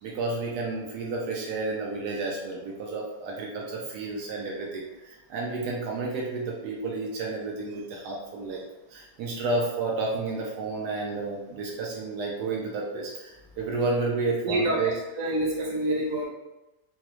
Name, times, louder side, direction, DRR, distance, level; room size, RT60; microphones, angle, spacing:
voice 1, 0.0-8.6 8.9-14.9, right 3 dB, 85° right, -2 dB, 1.1 m, -31 dB
voice 2, 14.4-16.3, right 1 dB, 65° right, -3 dB, 1.2 m, -27 dB
3.7 x 2.0 x 2.9 m, 1.0 s
omnidirectional pair, 1.7 m